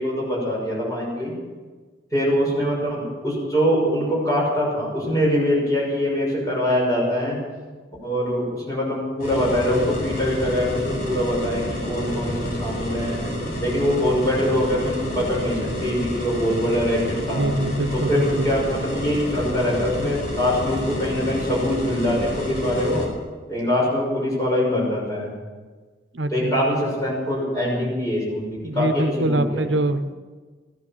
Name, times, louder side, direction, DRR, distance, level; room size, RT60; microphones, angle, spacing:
voice 1, 0.0-1.3 2.1-7.4 8.0-13.3 13.6-17.4 17.9-23.0 23.5-25.3 26.3-29.6, equal, 20° left, -5 dB, 6.3 m, -23 dB
sound 1, 9.2-23.1, equal, 55° left, 5.0 m, -29 dB
voice 2, 17.4-18.5 26.1-26.5 28.6-30.1, right 1 dB, 90° right, 9 dB, 1.0 m, -24 dB
15.5 x 11.0 x 7.4 m, 1.4 s
head